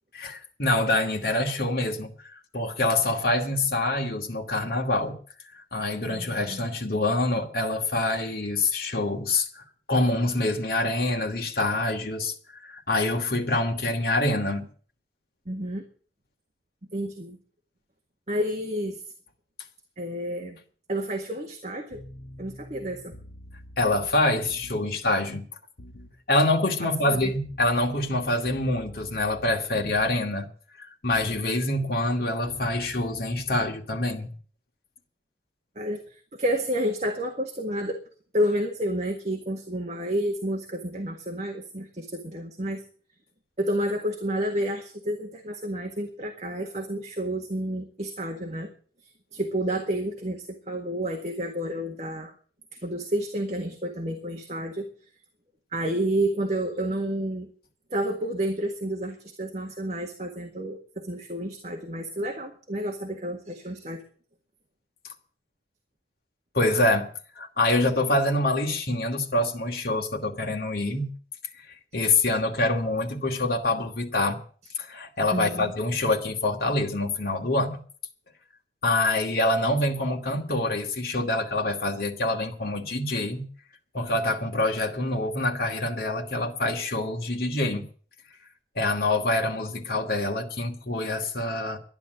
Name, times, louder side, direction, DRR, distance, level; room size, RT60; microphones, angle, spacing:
voice 1, 0.1-5.2 5.5-14.7 23.8-25.5 26.3-30.5 30.8-34.3 66.5-67.1 67.4-71.1 71.9-74.4 74.8-77.8 78.8-83.5 83.9-87.9 88.8-91.8, left 2 dB, 55° left, 2.3 m, -26 dB
voice 2, 6.1-6.6 15.5-15.9 16.9-17.4 18.3-19.0 20.0-20.6 20.9-22.0 22.4-23.1 27.0-27.3 35.8-38.0 38.3-42.8 43.6-48.7 49.3-52.3 52.7-54.9 55.7-57.5 57.9-64.0 75.3-75.7, right 1 dB, 40° right, 1.8 m, -30 dB
sound 1, 21.9-25.0 25.8-26.2 27.1-30.3 31.1-31.5 32.5-33.7, equal, 70° left, 1.6 m, -45 dB
12.5 x 10.5 x 8.0 m
head